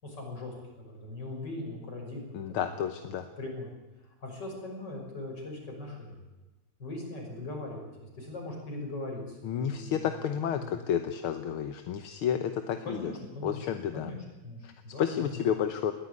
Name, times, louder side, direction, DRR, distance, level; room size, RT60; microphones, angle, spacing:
voice 1, 0.0-2.7 3.0-3.7 4.2-6.1 6.8-10.2 10.5-10.8 12.8-13.6 13.9-14.2 14.4-15.5, left 2 dB, 55° left, 0 dB, 6.8 m, -40 dB
voice 2, 2.3-3.3 9.4-13.1 13.4-14.1 14.6-14.7 15.0-15.9, left 9 dB, 80° left, 8 dB, 1.9 m, -31 dB
21.0 x 15.5 x 9.5 m, 1.1 s
omnidirectional pair, 2.3 m